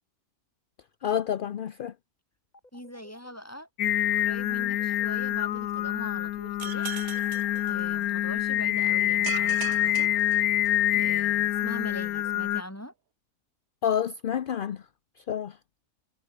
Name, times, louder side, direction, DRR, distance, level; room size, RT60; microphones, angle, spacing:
voice 1, 1.0-1.9 13.8-14.8 15.3-15.6, left 9 dB, 50° left, 0.6 m, -28 dB
sound 1, 2.5-3.3 4.3-5.0 7.0-7.8 8.8-9.5 11.5-12.3, left 1 dB, 25° left, 5.9 m, -55 dB
voice 2, 2.7-3.7 4.1-6.9 7.7-10.1 10.9-12.9, equal, 10° left, 4.1 m, -42 dB
Singing, 3.8-12.6, left 13 dB, 80° left, 1.1 m, -26 dB
sound 2, 6.6-8.4 9.2-11.0, right 11 dB, 70° right, 1.3 m, -40 dB
omnidirectional pair, 1.6 m